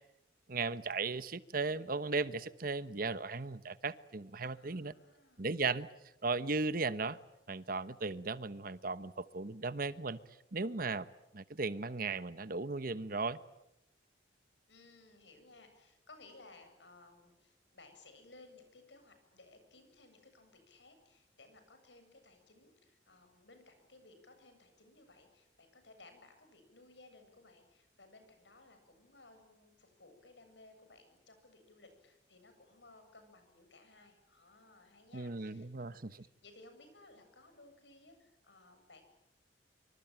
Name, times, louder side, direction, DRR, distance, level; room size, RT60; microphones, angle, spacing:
voice 1, 0.5-4.9 5.4-5.9 6.2-7.2 7.5-10.2 10.5-11.1 11.3-13.4 35.1-36.3, right 3 dB, 55° right, 1.1 m, -36 dB
voice 2, 4.5-5.5 14.7-39.0, left 2 dB, 85° left, 7.8 m, -60 dB
26.0 x 25.0 x 9.1 m
head